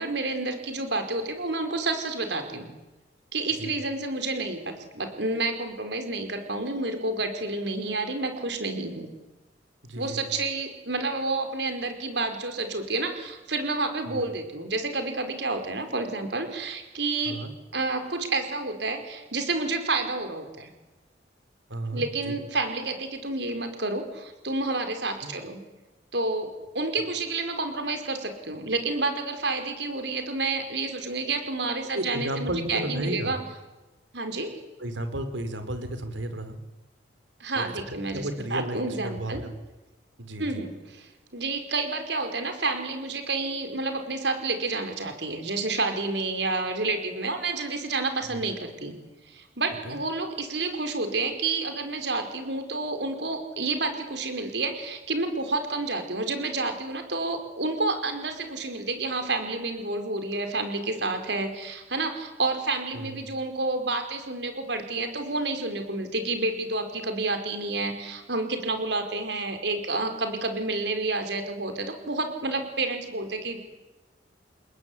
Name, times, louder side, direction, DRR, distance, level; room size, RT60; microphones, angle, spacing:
voice 1, 0.0-2.7 3.3-9.1 10.0-17.4 17.7-20.7 21.9-25.6 26.1-33.4 34.1-34.6 37.4-39.4 40.4-48.9 49.3-73.6, right 3 dB, 65° right, 7 dB, 4.9 m, -29 dB
voice 2, 9.8-10.2 14.0-14.3 17.2-17.5 21.7-22.4 25.2-25.3 31.9-33.4 34.8-36.6 37.5-39.5 40.2-40.6 48.3-48.4 49.8-50.0 62.9-63.2, right 1 dB, 85° right, 10 dB, 4.1 m, -33 dB
29.5 x 20.5 x 9.9 m, 1.1 s
head